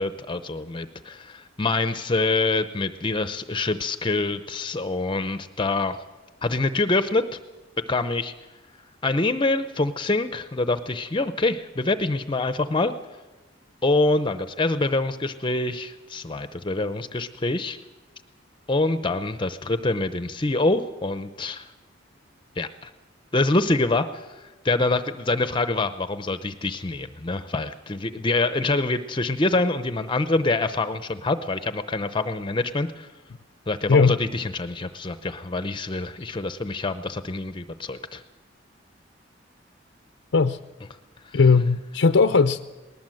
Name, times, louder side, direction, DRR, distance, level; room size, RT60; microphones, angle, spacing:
voice 1, 0.0-6.0 6.4-7.2 7.9-8.3 9.0-12.9 13.8-17.8 18.7-21.7 22.6-22.9 23.3-33.1 33.7-38.2 41.2-41.4, left 2 dB, 25° left, 11 dB, 0.7 m, -25 dB
voice 2, 41.3-42.6, left 4 dB, 75° left, 10 dB, 0.6 m, -18 dB
19.5 x 19.5 x 7.8 m, 1.2 s
head